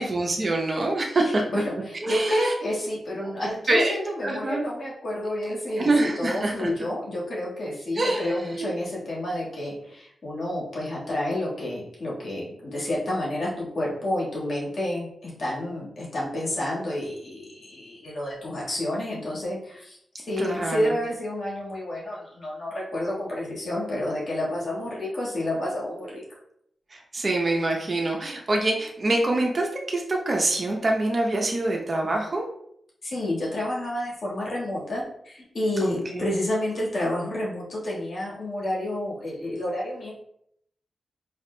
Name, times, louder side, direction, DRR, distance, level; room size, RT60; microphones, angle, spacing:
voice 1, 0.0-1.4 2.0-2.5 3.4-3.9 4.2-4.6 5.4-6.7 7.9-8.7 20.4-20.9 26.9-32.4 35.8-36.3, right 2 dB, 45° right, 0 dB, 0.7 m, -25 dB
voice 2, 1.2-20.0 20.3-26.2 33.0-40.1, left 1 dB, 65° left, -5 dB, 1.5 m, -29 dB
4.8 x 2.8 x 2.2 m, 0.72 s
supercardioid pair, 45°, 0 cm